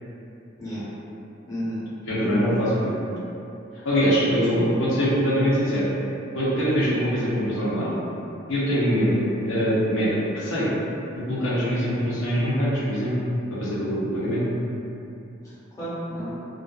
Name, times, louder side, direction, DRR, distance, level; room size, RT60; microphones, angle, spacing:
voice 1, 1.5-1.8 2.2-2.4 4.5-4.6 11.7-12.0 15.4-16.3, equal, 15° left, -12 dB, 0.7 m, -32 dB
voice 2, 2.0-3.0 3.8-5.9 6.3-8.0 8.5-10.7 11.2-13.1 13.6-14.4, equal, 80° left, -9 dB, 0.7 m, -23 dB
2.4 x 2.3 x 2.3 m, 2.7 s
head